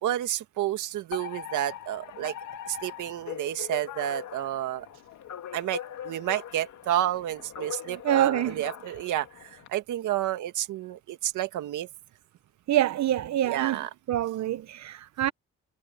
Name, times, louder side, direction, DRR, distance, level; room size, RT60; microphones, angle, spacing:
voice 1, 0.0-2.3 2.7-4.9 5.5-11.9 13.5-13.9, right 13 dB, 85° right, 2.1 m, -30 dB
Alarm, 1.1-9.7, left 10 dB, 75° left, 2.6 m, -41 dB
voice 2, 7.9-8.6 12.7-13.8 14.1-15.3, right 12 dB, 65° right, 0.9 m, -26 dB
cardioid pair, 90°, 30 cm